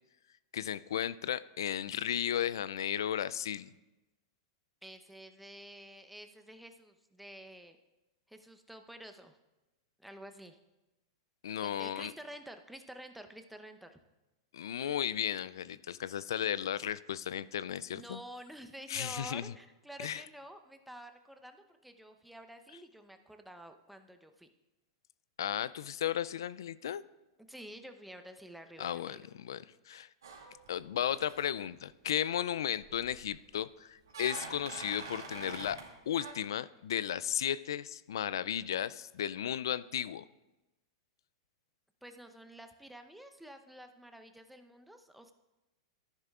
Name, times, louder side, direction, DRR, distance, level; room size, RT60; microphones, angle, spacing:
voice 1, 0.5-3.7 11.4-12.1 14.5-18.2 18.9-19.5 20.0-20.2 25.4-27.0 28.8-30.1 30.7-35.8 36.1-40.2, left 10 dB, 75° left, 18 dB, 0.3 m, -35 dB
voice 2, 4.8-7.8 8.3-9.4 10.0-10.6 11.6-14.0 17.9-24.5 27.5-29.2 42.0-45.3, right 1 dB, ahead, 6 dB, 0.8 m, -50 dB
sound 1, 30.2-30.8 31.1-31.4 32.8-33.4 34.1-35.9 36.2-36.3, right 4 dB, 85° right, 2.4 m, -45 dB
13.5 x 10.5 x 2.4 m, 1.0 s
hypercardioid pair, 110°, 2 cm